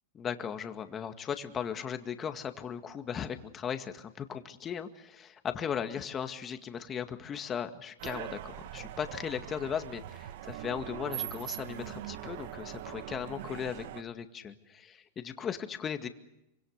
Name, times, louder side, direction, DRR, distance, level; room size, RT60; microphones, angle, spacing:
voice 1, 0.1-16.1, left 8 dB, 25° left, 7 dB, 2.0 m, -37 dB
sound 1, 8.0-14.0, right 13 dB, 65° right, 1.2 m, -41 dB
26.0 x 25.0 x 6.7 m, 0.88 s
hypercardioid pair, 130°, 0 cm